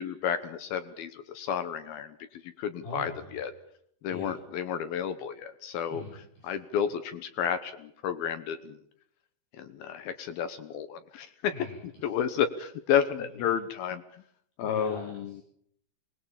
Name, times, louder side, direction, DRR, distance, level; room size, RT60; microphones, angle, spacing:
voice 1, 0.0-3.5 4.0-6.0 6.4-8.8 9.6-11.5 12.0-14.0 14.6-15.4, left 8 dB, 75° left, 10 dB, 2.2 m, -31 dB
voice 2, 2.8-3.4 4.1-4.3 5.9-6.5 11.5-12.1 13.2-13.3 14.6-15.4, left 1 dB, 55° left, -3 dB, 8.3 m, -42 dB
24.5 x 19.5 x 7.3 m, 0.69 s
omnidirectional pair, 5.6 m